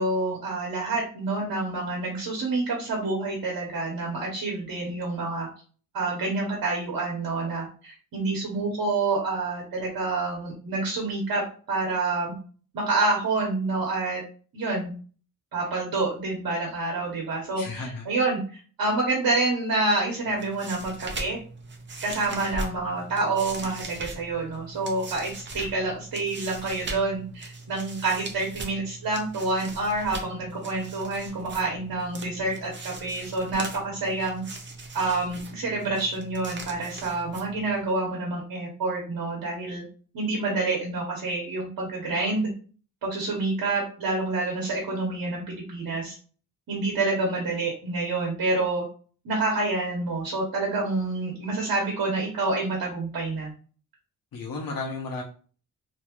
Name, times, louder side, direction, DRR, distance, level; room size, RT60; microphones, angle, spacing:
voice 1, 0.0-5.5 5.9-12.3 12.7-14.2 14.5-14.9 15.5-18.4 18.8-21.4 22.0-34.4 34.9-39.8 40.1-42.5 43.0-46.2 46.7-48.8 49.2-53.5, right 3 dB, 85° right, -2 dB, 1.0 m, -28 dB
voice 2, 17.6-18.0 54.3-55.2, left 3 dB, 75° left, 0 dB, 0.8 m, -33 dB
sound 1, 20.2-37.9, right 2 dB, 35° right, 0.6 m, -40 dB
2.8 x 2.3 x 3.0 m, 0.40 s
wide cardioid pair, 145°, 34 cm